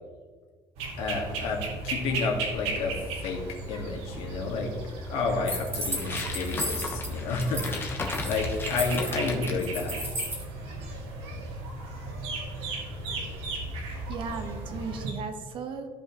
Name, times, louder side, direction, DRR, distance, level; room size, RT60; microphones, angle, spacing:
sound 1, 0.8-15.1, right 2 dB, 80° right, 2.2 m, -36 dB
voice 1, 1.0-3.0 3.2-3.4 3.7-4.7 5.1-10.1, left 3 dB, 75° left, 0 dB, 1.9 m, -30 dB
sound 2, 5.5-7.1 7.4-7.8 8.0-10.4, equal, 20° right, 2.6 m, -34 dB
sound 3, 5.9-9.6, left 3 dB, 20° left, 1.1 m, -36 dB
voice 2, 14.1-15.9, right 5 dB, 55° right, 6 dB, 1.1 m, -36 dB
14.5 x 5.3 x 3.1 m, 1.5 s
cardioid pair, 145°, 10 cm